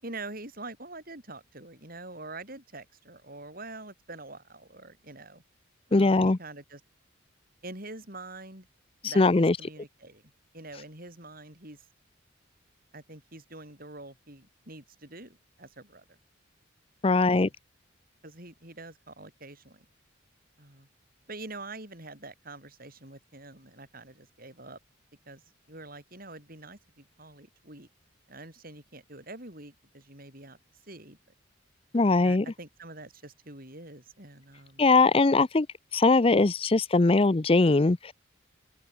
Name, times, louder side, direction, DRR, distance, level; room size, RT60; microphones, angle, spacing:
voice 1, 0.0-5.4 5.9-6.8 7.6-8.7 9.0-10.2 10.5-11.9 12.9-16.2 17.0-17.5 18.2-19.9 20.6-20.9 21.3-24.8 25.3-25.4 25.7-27.9 28.3-30.6 30.9-31.2 32.2-34.9, right 2 dB, 45° right, 7.8 m, -45 dB
voice 2, 5.9-6.4 9.0-9.6 17.0-17.5 31.9-32.4 34.8-35.7 35.9-38.1, left 3 dB, 30° left, 0.5 m, -21 dB
open air
head